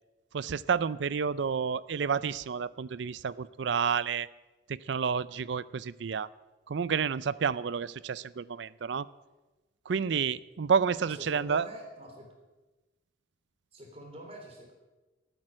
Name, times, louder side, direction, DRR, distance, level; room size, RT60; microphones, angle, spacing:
voice 1, 0.3-4.3 4.7-6.3 6.7-9.1 9.9-11.7, right 6 dB, 65° right, 18 dB, 0.4 m, -30 dB
voice 2, 11.0-12.3 13.7-14.7, equal, 30° right, 2 dB, 3.1 m, -45 dB
14.0 x 9.2 x 7.5 m, 1.2 s
head